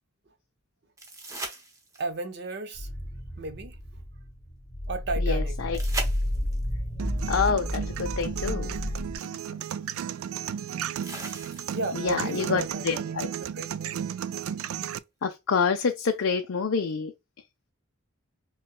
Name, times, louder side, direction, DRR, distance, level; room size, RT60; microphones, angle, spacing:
sound 1, 1.0-2.3 5.7-6.7 8.6-8.7 11.0-12.0 15.0-15.1, right 2 dB, 15° right, 0.8 m, -38 dB
voice 1, 2.0-2.9 3.4-3.8 4.9-5.6 11.7-14.1, right 2 dB, 50° right, 0.8 m, -34 dB
sound 2, 2.7-9.2, left 1 dB, 30° left, 1.3 m, -31 dB
voice 2, 5.2-5.8 7.3-8.7 12.0-13.3 15.2-17.1, left 5 dB, 70° left, 0.5 m, -27 dB
sound 3, 7.0-15.0, right 9 dB, 80° right, 0.3 m, -34 dB
5.5 x 2.2 x 2.3 m
head